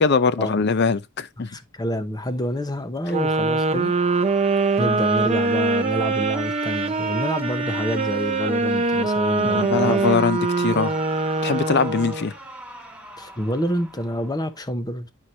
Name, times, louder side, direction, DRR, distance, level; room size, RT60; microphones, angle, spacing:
voice 1, 0.0-1.5 9.4-11.0 11.4-12.3, left 4 dB, 55° left, 0.6 m, -22 dB
voice 2, 1.4-3.9 4.8-10.1 13.2-15.1, equal, 20° left, 0.8 m, -27 dB
sound 1, 3.1-12.3, right 3 dB, 30° right, 0.6 m, -23 dB
Alarm, 3.6-14.6, equal, 5° right, 1.2 m, -39 dB
11.5 x 4.6 x 2.8 m
head